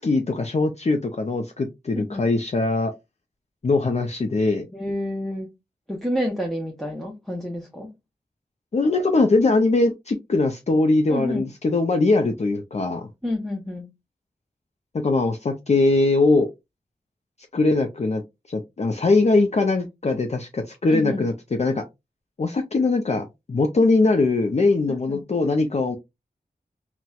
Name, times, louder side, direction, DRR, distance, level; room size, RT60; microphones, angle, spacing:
voice 1, 0.0-2.9 3.6-4.7 8.7-13.1 14.9-16.5 17.5-18.2 18.5-21.3 21.6-21.8 22.4-26.0, left 3 dB, 45° left, 0.4 m, -21 dB
voice 2, 4.7-5.5 5.9-7.9 11.1-11.5 13.2-13.9 20.9-21.2 24.9-25.2, left 1 dB, ahead, 0.6 m, -29 dB
4.1 x 2.1 x 2.3 m
wide cardioid pair, 85°, 16 cm